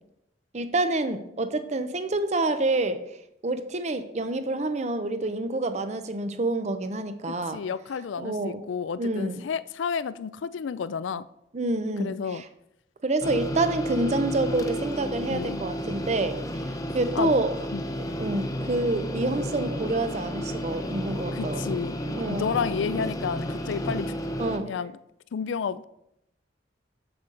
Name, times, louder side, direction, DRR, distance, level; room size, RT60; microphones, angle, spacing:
voice 1, 0.5-3.0 3.4-7.6 8.2-8.6 9.0-9.4 11.5-12.5 13.0-16.4 16.9-17.6 18.2-21.6 22.2-22.5 24.4-24.7, right 2 dB, 40° right, 10 dB, 0.6 m, -27 dB
voice 2, 7.3-11.2 12.0-12.4 15.3-15.6 17.2-17.3 17.7-17.8 21.3-21.9 22.3-24.2 24.6-24.9 25.3-25.8, left 6 dB, 90° left, 16 dB, 0.4 m, -31 dB
sound 1, 13.2-24.6, equal, 20° left, 0.6 m, -32 dB
7.8 x 7.4 x 3.8 m, 0.80 s
head